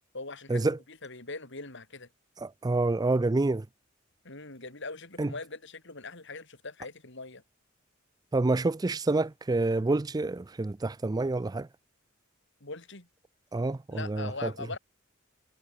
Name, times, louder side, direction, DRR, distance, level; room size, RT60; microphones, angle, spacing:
voice 1, 0.1-2.1 4.2-7.4 12.6-13.1 13.9-14.8, left 3 dB, 60° left, 5.1 m, -41 dB
voice 2, 2.4-3.7 5.2-5.3 8.3-11.7 13.5-14.5, right 2 dB, 20° right, 0.4 m, -28 dB
head